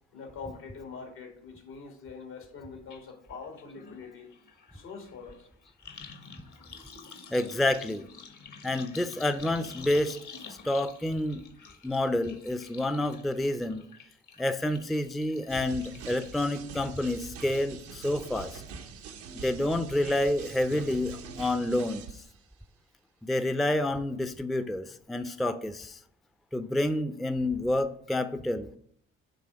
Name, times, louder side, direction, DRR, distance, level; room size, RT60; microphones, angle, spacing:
voice 1, 0.1-4.3 4.7-5.5, left 5 dB, 80° left, 3 dB, 1.8 m, -44 dB
sound 1, 2.9-3.0 3.3-17.9 18.3-18.8 19.1-19.2, left 5 dB, 55° left, 1.1 m, -50 dB
voice 2, 7.3-8.1 8.6-10.2 10.5-11.4 11.8-13.8 14.4-18.6 19.3-22.0 23.2-26.0 26.5-28.8, left 1 dB, ahead, 10 dB, 0.4 m, -29 dB
sound 2, 15.5-22.4, right 6 dB, 85° right, 0.8 m, -44 dB
7.7 x 3.3 x 4.8 m, 0.64 s
hypercardioid pair, 50°, 35 cm